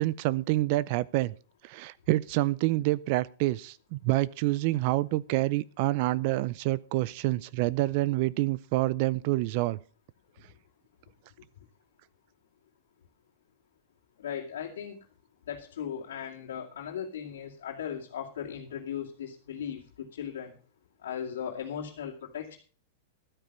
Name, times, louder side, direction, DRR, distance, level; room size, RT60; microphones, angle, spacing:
voice 1, 0.0-1.3 1.6-9.8, right 18 dB, 45° right, 0.5 m, -27 dB
voice 2, 14.2-15.0 15.4-20.5 21.0-22.6, left 8 dB, 90° left, 2.4 m, -37 dB
12.5 x 9.5 x 5.4 m
supercardioid pair, 160°, 0 cm